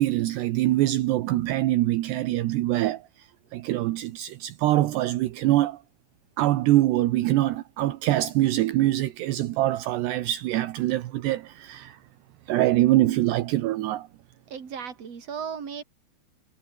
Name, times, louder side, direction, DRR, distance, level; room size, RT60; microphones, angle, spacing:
voice 1, 0.0-3.0 3.5-5.8 6.4-12.0 12.5-14.1, right 15 dB, 75° right, 3.1 m, -24 dB
voice 2, 14.5-15.8, right 7 dB, 40° right, 4.2 m, -35 dB
omnidirectional pair, 5.0 m